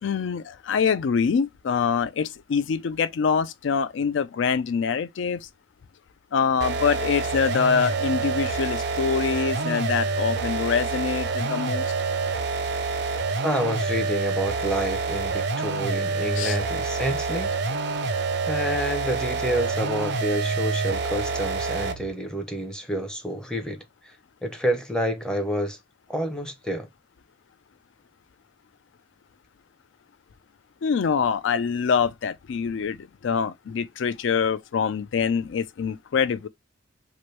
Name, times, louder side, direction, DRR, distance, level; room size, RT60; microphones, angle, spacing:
voice 1, 0.0-5.5 6.3-11.8 16.4-16.6 30.8-36.5, left 6 dB, 70° left, 0.4 m, -25 dB
sound 1, 6.6-22.1, right 4 dB, 55° right, 0.4 m, -27 dB
voice 2, 13.4-17.5 18.5-24.1 24.4-25.8 26.1-26.9, equal, 5° left, 0.5 m, -28 dB
3.0 x 2.6 x 3.1 m
head